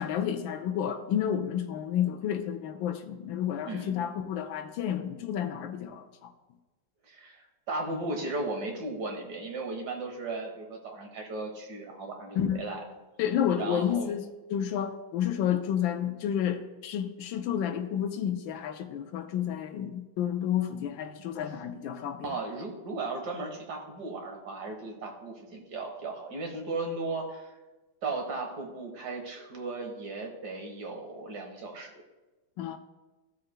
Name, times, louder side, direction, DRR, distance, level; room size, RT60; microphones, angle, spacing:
voice 1, 0.0-6.3 12.4-12.6 13.2-14.2 14.5-22.3 32.6-32.8, left 9 dB, 85° left, 1.4 m, -30 dB
voice 2, 7.0-12.8 13.6-14.1 22.2-27.5 28.0-32.0, right 3 dB, 60° right, 1.8 m, -36 dB
14.0 x 7.6 x 2.2 m
omnidirectional pair, 2.1 m